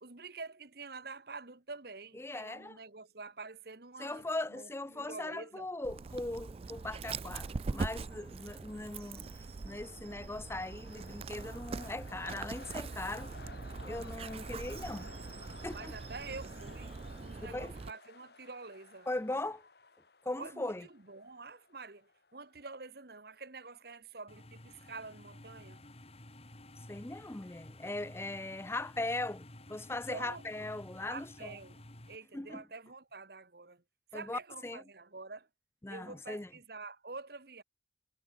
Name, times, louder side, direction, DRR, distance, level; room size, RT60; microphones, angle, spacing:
voice 1, 0.0-5.7 15.7-19.1 20.4-25.8 30.1-30.7 31.0-31.8 32.1-33.8 34.1-35.5 35.9-37.6, right 3 dB, 60° right, 1.7 m, -47 dB
voice 2, 2.2-2.8 4.0-9.3 9.6-13.3 13.8-15.1 15.6-15.9 17.5-17.7 19.1-19.6 20.2-20.9 26.9-31.6 32.3-32.6 34.1-34.8 35.8-36.5, left 2 dB, 15° left, 0.6 m, -39 dB
Dog, 5.8-17.9, right 4 dB, 35° right, 0.3 m, -42 dB
sound 1, 6.1-22.8, left 3 dB, 60° left, 2.7 m, -56 dB
sound 2, 24.3-32.2, left 1 dB, 35° left, 2.7 m, -53 dB
head